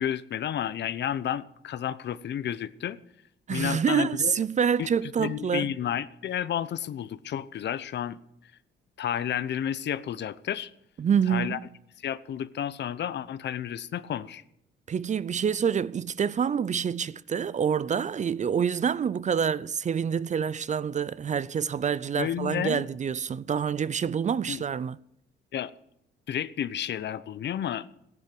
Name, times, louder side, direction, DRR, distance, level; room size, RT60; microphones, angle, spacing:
voice 1, 0.0-3.0 3.5-4.3 4.8-4.9 5.2-8.2 9.0-10.7 11.3-11.6 12.0-14.4 22.1-22.9 24.5-24.6 25.5-25.7 26.3-27.9, left 10 dB, 60° left, 0.8 m, -31 dB
voice 2, 3.5-5.7 11.0-11.6 14.9-25.0, right 7 dB, 35° right, 0.5 m, -27 dB
15.0 x 11.0 x 7.8 m
cardioid pair, 90°, 20 cm